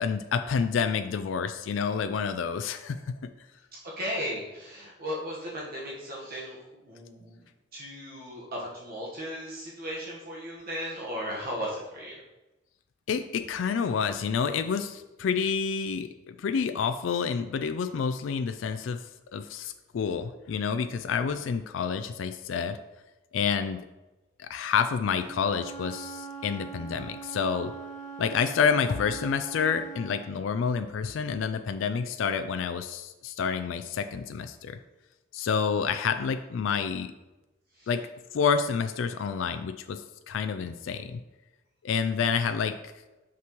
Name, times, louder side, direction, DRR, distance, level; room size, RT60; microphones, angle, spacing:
voice 1, 0.0-3.2 13.1-16.1 16.4-19.0 19.3-22.8 23.3-23.8 24.4-27.7 28.2-34.8 35.3-37.1 37.9-38.0 38.3-41.2 41.8-42.8, left 6 dB, 70° left, 9 dB, 0.3 m, -28 dB
voice 2, 3.8-7.4 7.7-12.2 37.7-37.9, equal, 50° right, -4 dB, 1.3 m, -36 dB
Wind instrument woodwind instrument, 25.2-30.2, right 5 dB, 40° left, 1.8 m, -42 dB
6.0 x 5.9 x 3.0 m, 1.1 s
head